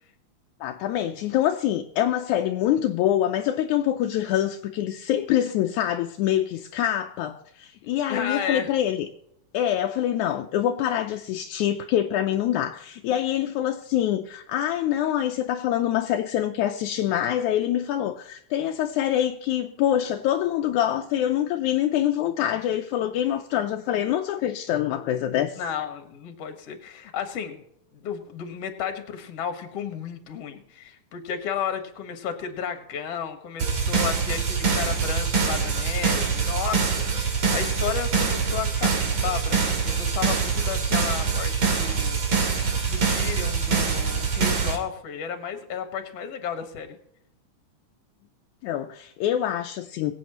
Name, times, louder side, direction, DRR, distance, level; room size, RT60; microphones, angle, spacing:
voice 1, 0.6-9.1 9.5-25.6 48.6-50.2, left 11 dB, 80° left, 2.0 m, -25 dB
voice 2, 8.1-8.7 25.6-27.6 27.9-42.5 42.9-47.0, left 8 dB, 55° left, 2.4 m, -33 dB
sound 1, 33.6-44.8, right 5 dB, 55° right, 3.4 m, -24 dB
23.0 x 8.6 x 3.0 m
omnidirectional pair, 3.5 m